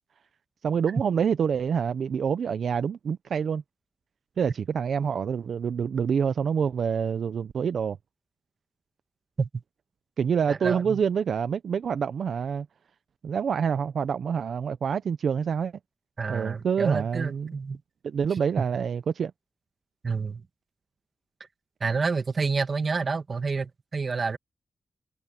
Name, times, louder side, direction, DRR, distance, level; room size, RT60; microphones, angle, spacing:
voice 1, 0.6-3.6 4.4-8.0 10.2-12.7 13.2-15.7 16.3-17.6 18.0-19.3, right 7 dB, 80° right, 0.6 m, -27 dB
voice 2, 10.5-11.0 16.2-17.8 18.6-18.7 20.0-20.4 21.8-24.4, right 4 dB, 50° right, 1.8 m, -29 dB
cardioid pair, 70°, 0 cm